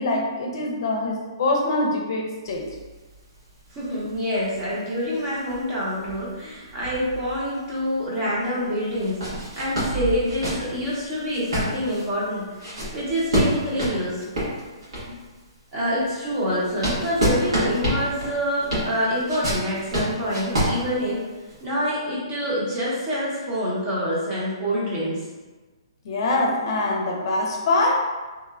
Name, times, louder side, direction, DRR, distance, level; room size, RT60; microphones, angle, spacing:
voice 1, 0.0-2.6 26.0-27.9, left 2 dB, 55° left, 0 dB, 0.6 m, -24 dB
sound 1, 2.5-7.8 8.2-8.3 8.9-15.3 15.8-21.6, equal, 80° right, 1.4 m, -28 dB
voice 2, 3.7-9.2 9.5-12.5 12.9-14.2 15.1-15.2 15.7-21.2 21.6-25.2, equal, 30° right, -6 dB, 0.9 m, -26 dB
2.9 x 2.1 x 2.4 m, 1.3 s
hypercardioid pair, 150°, 3 cm